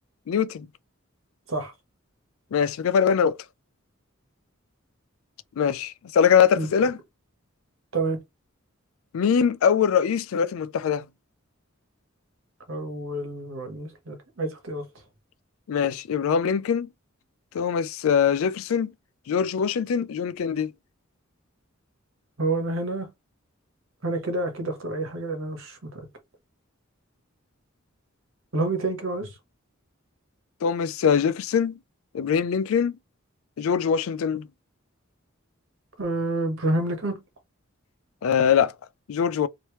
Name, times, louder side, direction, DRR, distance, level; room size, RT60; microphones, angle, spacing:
voice 1, 0.3-0.7 2.5-3.4 5.6-7.0 9.1-11.1 15.7-16.9 17.5-18.9 19.3-20.7 30.6-31.8 32.1-32.9 33.6-34.5 38.2-38.7 39.1-39.5, left 7 dB, 80° left, 0.4 m, -22 dB
voice 2, 12.7-14.8 22.4-23.1 24.0-25.8 28.5-29.3 36.0-37.2, right 2 dB, 75° right, 1.3 m, -28 dB
3.2 x 2.9 x 2.9 m
head